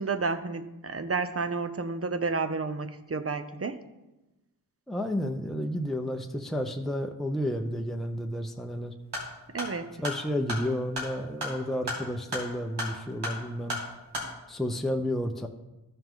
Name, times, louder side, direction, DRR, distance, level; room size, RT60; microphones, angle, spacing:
voice 1, 0.0-3.8 9.5-9.9, right 4 dB, 35° right, 10 dB, 0.8 m, -31 dB
voice 2, 4.9-8.9 10.0-13.8 14.5-15.5, equal, ahead, 4 dB, 0.8 m, -31 dB
sound 1, 9.0-14.3, left 1 dB, 90° right, 2.4 m, -36 dB
14.0 x 5.6 x 3.7 m, 1.0 s
cardioid pair, 45°, 39 cm